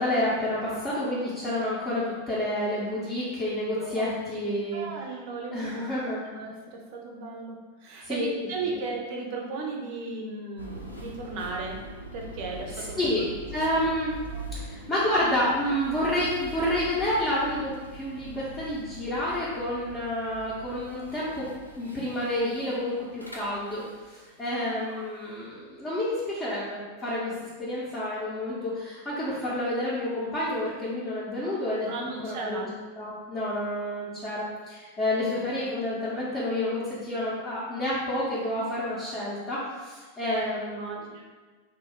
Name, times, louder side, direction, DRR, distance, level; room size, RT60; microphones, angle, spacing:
voice 1, 0.0-4.8 5.5-6.2 8.0-8.3 12.8-13.2 13.5-14.2 14.5-21.4 21.8-23.8 24.1-27.3 27.6-32.7 33.0-41.1, left 1 dB, 20° left, -11 dB, 0.8 m, -29 dB
voice 2, 3.8-4.4 4.7-5.8 6.4-11.8 12.1-13.1 14.3-14.4 24.8-25.1 31.9-32.7 40.2-41.2, right 3 dB, 45° right, 0 dB, 0.6 m, -36 dB
sound 1, 10.6-24.5, right 1 dB, 90° left, 0.4 m, -43 dB
2.7 x 2.3 x 3.5 m, 1.4 s
figure-of-eight pair, 90°, 0 cm